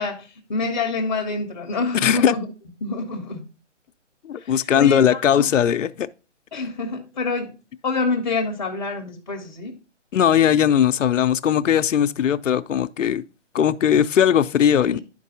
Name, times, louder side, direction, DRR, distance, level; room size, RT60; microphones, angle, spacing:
voice 1, 0.0-2.5 2.8-3.4 4.4-5.5 6.5-7.5 7.8-9.8 14.7-15.0, left 3 dB, 30° left, 0.8 m, -27 dB
voice 2, 2.0-2.4 4.2-6.1 10.1-13.2 13.5-15.0, left 9 dB, 90° left, 0.6 m, -19 dB
11.0 x 4.6 x 2.7 m
hypercardioid pair, 165°, 37 cm